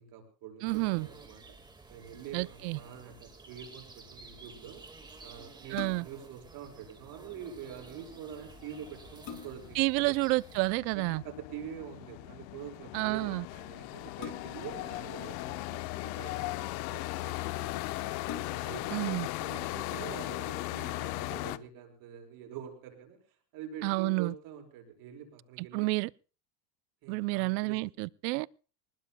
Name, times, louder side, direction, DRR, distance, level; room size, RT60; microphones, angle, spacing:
voice 1, 0.0-1.6 1.9-4.8 5.2-10.2 10.9-18.2 18.5-23.2 23.5-25.9 27.0-27.8, right 8 dB, 45° right, 5.8 m, -46 dB
voice 2, 0.6-1.1 2.3-2.8 5.7-6.1 9.8-11.2 12.9-13.4 18.9-19.3 23.8-24.3 25.6-26.1 27.1-28.5, right 25 dB, 85° right, 0.7 m, -30 dB
sound 1, 0.7-10.8, right 3 dB, 10° right, 1.7 m, -52 dB
sound 2, 5.7-6.3 8.3-8.4 8.9-9.8 11.4-11.7 14.2-14.8 15.8-16.5 17.2-17.3 17.6-17.7 18.2-18.9 19.4-19.5, left 9 dB, 45° left, 2.0 m, -45 dB
sound 3, 7.3-7.4 7.7-21.6, left 19 dB, 85° left, 1.0 m, -38 dB
25.5 x 20.0 x 2.2 m
cardioid pair, 175°, 49 cm